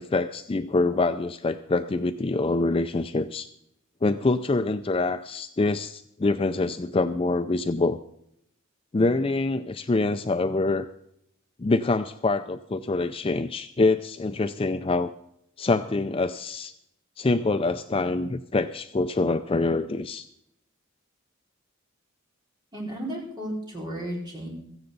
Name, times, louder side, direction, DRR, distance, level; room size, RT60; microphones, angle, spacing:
voice 1, 0.0-3.5 4.0-8.0 8.9-10.9 11.6-15.1 15.6-16.7 17.2-20.3, left 3 dB, 25° left, 9 dB, 0.4 m, -25 dB
voice 2, 22.7-24.5, right 1 dB, 20° right, -3 dB, 4.5 m, -33 dB
16.5 x 14.5 x 4.0 m, 0.76 s
head